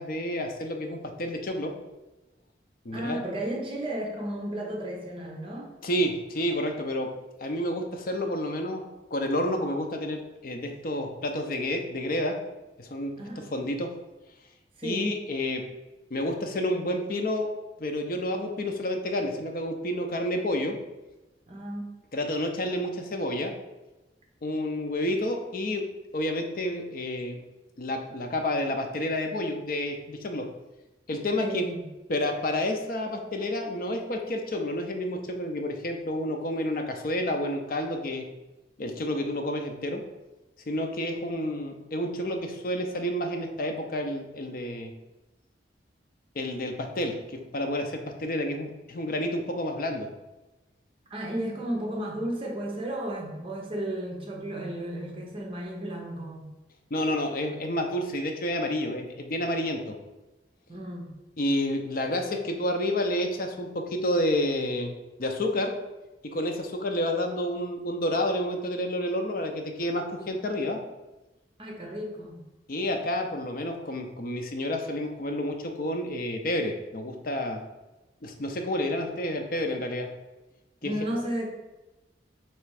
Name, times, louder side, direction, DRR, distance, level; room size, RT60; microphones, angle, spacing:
voice 1, 0.0-1.7 2.8-3.2 5.8-7.1 7.4-8.8 9.1-12.4 12.8-13.1 13.5-13.9 14.8-15.6 16.1-17.5 17.8-20.8 22.1-23.5 24.4-25.8 26.1-27.4 27.8-30.5 31.1-31.6 32.1-38.2 38.8-40.0 40.7-44.9 46.3-50.1 56.9-59.9 61.4-64.9 65.2-65.7 66.2-70.8 72.7-77.6 78.2-80.1 80.8-80.9, left 1 dB, 50° left, 3 dB, 0.6 m, -29 dB
voice 2, 2.9-5.7 13.2-13.5 14.8-15.1 21.5-21.9 31.4-31.9 51.1-56.5 60.7-61.1 71.6-72.4 80.8-81.4, right 1 dB, 30° right, -1 dB, 0.7 m, -33 dB
3.3 x 3.1 x 4.7 m, 1.1 s
head